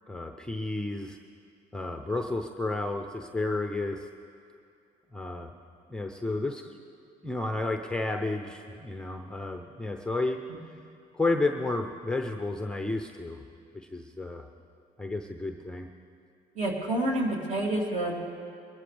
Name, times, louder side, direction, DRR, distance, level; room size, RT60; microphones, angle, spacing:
voice 1, 0.1-1.2 1.7-4.1 5.1-5.5 5.9-6.8 7.2-10.4 11.1-13.4 13.7-14.4 15.0-15.9, left 2 dB, 5° left, 4 dB, 0.7 m, -31 dB
voice 2, 16.5-18.2, right 1 dB, 45° right, -2 dB, 3.0 m, -28 dB
22.5 x 13.0 x 3.4 m, 2.4 s
cardioid pair, 110°, 17 cm